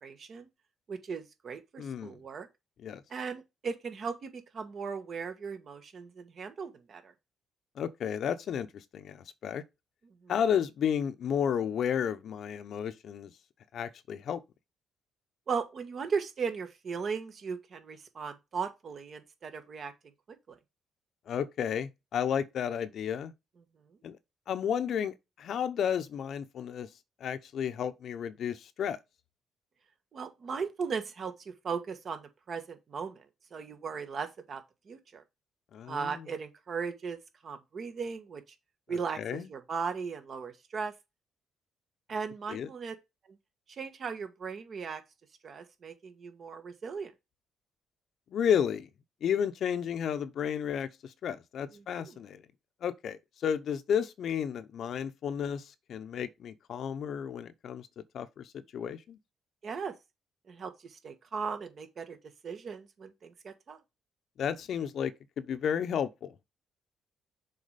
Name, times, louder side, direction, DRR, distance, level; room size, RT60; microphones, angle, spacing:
voice 1, 0.0-0.5 0.9-2.5 3.1-7.1 10.2-10.3 15.5-19.9 30.1-33.2 33.5-34.6 34.9-35.2 35.9-37.2 37.4-38.4 38.9-40.9 42.1-42.9 43.7-45.0 45.4-47.1 51.7-52.2 59.6-59.9 60.5-62.2 62.4-63.8, right 5 dB, 45° right, 1.6 m, -37 dB
voice 2, 1.8-2.2 2.8-3.0 7.8-9.6 10.3-13.3 13.7-14.4 21.3-23.3 24.0-24.2 24.5-26.9 27.2-29.0 35.7-36.3 39.2-39.5 42.5-42.7 48.3-48.9 49.2-52.4 52.8-58.5 58.7-59.2 64.4-66.4, left 8 dB, 60° left, 0.8 m, -32 dB
6.7 x 4.3 x 5.1 m
cardioid pair, 115°, 0 cm